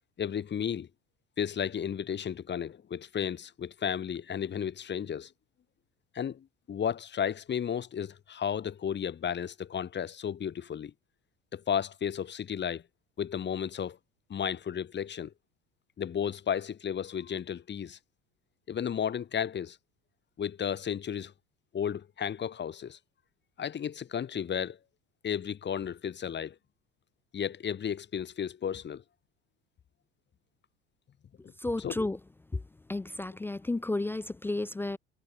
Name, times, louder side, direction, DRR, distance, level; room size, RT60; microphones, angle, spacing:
voice 1, 0.2-0.9 1.4-5.3 6.1-10.9 11.5-12.8 13.2-14.0 14.3-15.3 16.0-18.0 18.7-19.8 20.4-21.3 21.7-23.0 23.6-24.8 25.2-26.6 27.3-29.0 31.4-31.5 31.8-32.0, left 8 dB, 35° left, 2.6 m, -33 dB
voice 2, 31.6-32.2 32.5-32.6 32.9-35.0, left 2 dB, 5° left, 0.4 m, -32 dB
figure-of-eight pair, 65°, 31 cm